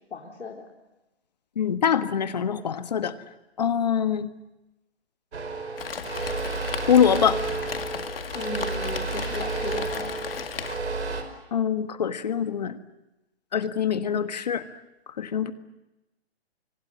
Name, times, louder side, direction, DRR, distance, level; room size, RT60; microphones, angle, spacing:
voice 1, 0.1-0.7 8.3-10.5, left 4 dB, 85° left, -1 dB, 3.9 m, -37 dB
voice 2, 1.6-3.1 3.6-4.3 6.8-7.4 11.5-12.8 13.5-14.6 15.2-15.5, left 8 dB, 40° left, 10 dB, 1.5 m, -24 dB
sound 1, 5.3-11.2, right 3 dB, 85° right, 5.5 m, -31 dB
Rain, 5.8-10.8, left 6 dB, 60° left, 2.1 m, -36 dB
29.5 x 25.0 x 7.5 m, 0.97 s
hypercardioid pair, 175°, 33 cm